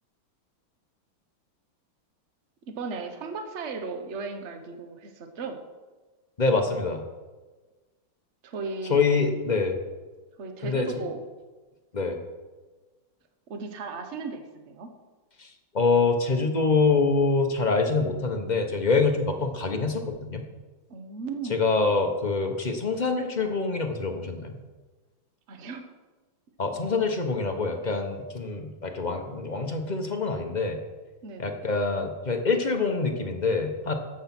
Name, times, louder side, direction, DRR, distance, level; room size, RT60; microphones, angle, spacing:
voice 1, 2.8-5.6 8.4-9.0 10.4-11.2 13.5-14.9 20.9-21.8 25.5-25.8 31.2-31.7, right 4 dB, 40° right, 6 dB, 1.3 m, -36 dB
voice 2, 6.4-7.0 8.9-9.8 10.6-10.9 11.9-12.2 15.4-20.4 21.5-24.6 26.6-30.8 31.4-33.9, left 4 dB, 30° left, 4 dB, 1.0 m, -25 dB
13.0 x 8.0 x 6.1 m, 1.3 s
omnidirectional pair, 2.2 m